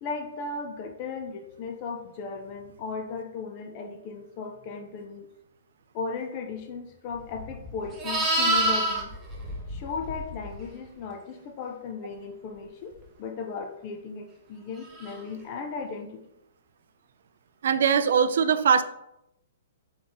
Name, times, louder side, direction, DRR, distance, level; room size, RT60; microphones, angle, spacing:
voice 1, 0.0-5.3 5.9-9.1 9.7-16.2, left 5 dB, 30° left, 5 dB, 0.4 m, -36 dB
Livestock farm animals working animals, 7.3-10.6 14.9-15.2, right 1 dB, 10° right, 0.7 m, -27 dB
voice 2, 17.6-18.8, right 7 dB, 65° right, 11 dB, 0.3 m, -21 dB
3.9 x 3.8 x 3.5 m, 0.84 s
hypercardioid pair, 165°, 0 cm